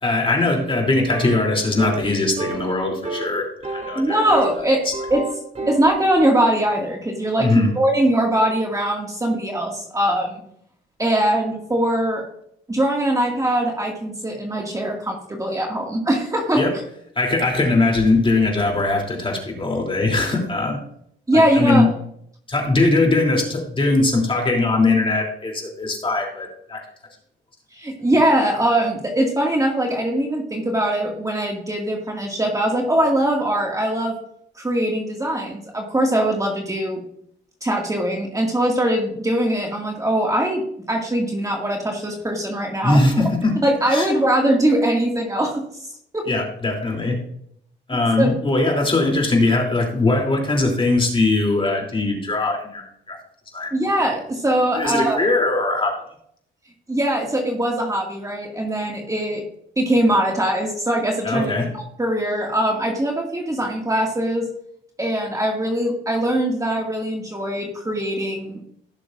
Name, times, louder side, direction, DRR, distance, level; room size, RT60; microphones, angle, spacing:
voice 1, 0.0-4.2 4.6-4.9 7.4-7.7 16.6-16.7 17.1-20.8 21.3-21.9 22.5-26.8 42.8-43.5 43.9-44.1 46.3-47.2 47.9-52.8 53.1-53.2 53.5-53.7 54.7-55.9 61.2-61.7, left 2 dB, 25° left, 1 dB, 3.2 m, -20 dB
sound 1, 1.1-1.5 1.8-2.1 2.4-2.7 3.0-3.3 3.6-4.6 4.9-5.9, right 2 dB, 35° right, 3.3 m, -29 dB
voice 2, 3.9-4.8 5.1-5.2 5.7-10.4 11.0-12.2 12.7-16.6 21.3-21.9 27.7-34.1 34.6-37.0 37.6-43.0 43.6-45.6 46.1-46.2 48.2-48.4 53.7-55.2 56.9-59.4 59.8-64.5 65.0-68.6, right 1 dB, 15° right, 0 dB, 2.1 m, -21 dB
16.5 x 6.7 x 2.6 m, 0.69 s
cardioid pair, 90°, 20 cm